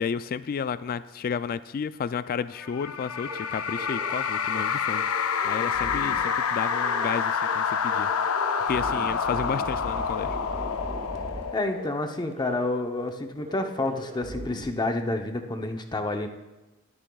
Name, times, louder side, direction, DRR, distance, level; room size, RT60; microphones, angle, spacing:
voice 1, 0.0-8.1 8.6-10.4, left 6 dB, 45° left, 14 dB, 0.3 m, -32 dB
sound 1, 2.6-12.3, left 6 dB, 85° left, 0.6 m, -28 dB
sound 2, 3.2-3.4 3.7-4.2 4.5-4.6 4.9-6.3 6.6-7.2 7.4-7.6 7.8-11.4 11.7-11.9 12.2-12.7 13.0-13.1 13.4-14.6, right 1 dB, 30° right, 1.1 m, -39 dB
voice 2, 11.5-16.3, left 2 dB, 20° left, 5 dB, 0.7 m, -29 dB
20.0 x 8.7 x 2.3 m, 1.0 s
head